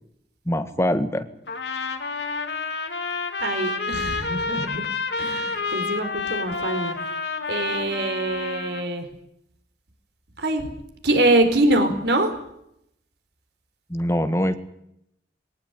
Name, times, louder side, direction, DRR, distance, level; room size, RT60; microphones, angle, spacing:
voice 1, 0.5-1.3 13.9-14.6, equal, 15° left, 9 dB, 1.7 m, -23 dB
Trumpet, 1.5-8.8, left 4 dB, 80° left, 2.6 m, -29 dB
voice 2, 3.4-4.8 5.2-7.0 7.5-9.0 10.4-10.7 11.0-12.3, right 1 dB, 70° right, 7 dB, 4.3 m, -23 dB
21.0 x 19.0 x 9.6 m, 0.76 s
head